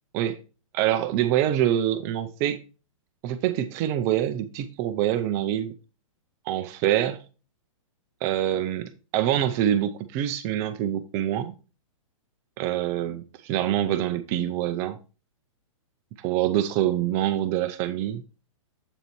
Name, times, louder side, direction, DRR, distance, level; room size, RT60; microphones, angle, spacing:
voice 1, 0.7-2.6 3.2-5.7 6.5-7.2 8.2-11.5 12.6-15.0 16.2-18.2, right 11 dB, 15° right, 0.3 m, -25 dB
8.0 x 6.9 x 2.9 m
hypercardioid pair, 160°, 17 cm